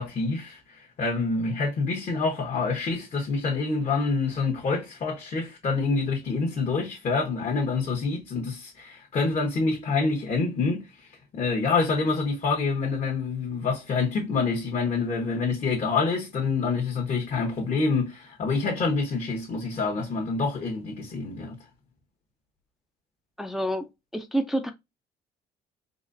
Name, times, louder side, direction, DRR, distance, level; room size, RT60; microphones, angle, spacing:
voice 1, 0.0-21.6, left 4 dB, 40° left, 1.1 m, -27 dB
voice 2, 23.4-23.9 24.1-24.7, right 1 dB, ahead, 0.5 m, -28 dB
4.1 x 3.0 x 2.5 m
cardioid pair, 110°, 17 cm